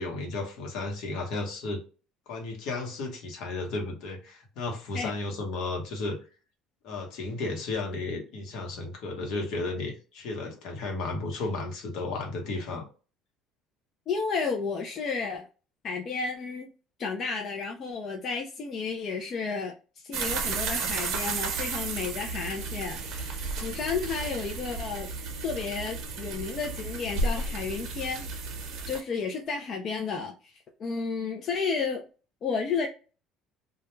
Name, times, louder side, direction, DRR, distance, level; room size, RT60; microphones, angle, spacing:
voice 1, 0.0-1.8 2.3-6.2 6.8-12.9, left 3 dB, 70° left, 1.1 m, -33 dB
voice 2, 14.1-15.5 15.8-16.7 17.0-19.7 20.0-25.1 25.4-28.2 28.9-30.5 30.8-32.0 32.4-32.9, left 5 dB, 45° left, 0.5 m, -32 dB
sound 1, 20.1-29.0, right 3 dB, 65° right, 0.7 m, -33 dB
2.3 x 2.2 x 3.0 m
cardioid pair, 120°, 0 cm